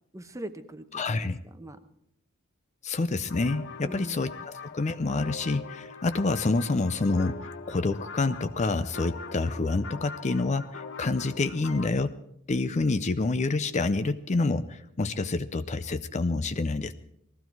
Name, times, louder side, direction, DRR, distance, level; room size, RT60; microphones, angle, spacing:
voice 1, 0.1-1.8 3.8-4.3, right 1 dB, 15° right, 9 dB, 0.9 m, -42 dB
voice 2, 0.9-1.4 2.8-4.3 4.7-7.3 7.7-12.1 12.5-16.9, left 3 dB, 35° left, 11 dB, 0.5 m, -27 dB
sound 1, 3.3-11.9, left 4 dB, 60° left, 0.9 m, -42 dB
19.5 x 15.0 x 4.6 m, 0.77 s
head